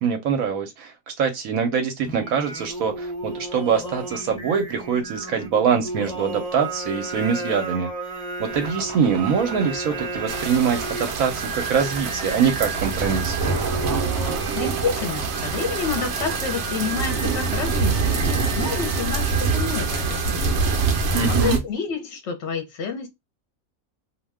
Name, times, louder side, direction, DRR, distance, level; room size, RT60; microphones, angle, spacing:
voice 1, 0.0-7.9 8.4-13.4 21.1-21.6, right 6 dB, 80° right, 1.0 m, -23 dB
Singing, 2.0-21.6, right 2 dB, 5° left, 0.7 m, -34 dB
sound 1, 8.5-16.4, right 2 dB, 40° right, 0.5 m, -39 dB
sound 2, 10.3-21.6, right 4 dB, 60° right, 0.8 m, -25 dB
voice 2, 14.5-20.5 20.8-23.1, left 6 dB, 60° left, 0.9 m, -29 dB
2.5 x 2.1 x 3.3 m
omnidirectional pair, 1.5 m